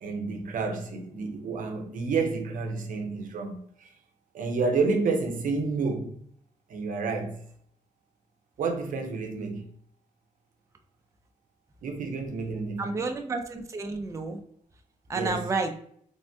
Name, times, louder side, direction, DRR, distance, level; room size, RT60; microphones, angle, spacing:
voice 1, 0.0-3.9 4.3-6.2 6.7-7.4 8.6-9.6 11.8-12.8 15.1-15.4, right 4 dB, 80° right, 0.5 m, -29 dB
voice 2, 12.8-14.4 15.1-15.8, right 3 dB, 20° right, 0.4 m, -30 dB
3.3 x 2.1 x 2.6 m
cardioid pair, 85°, 14 cm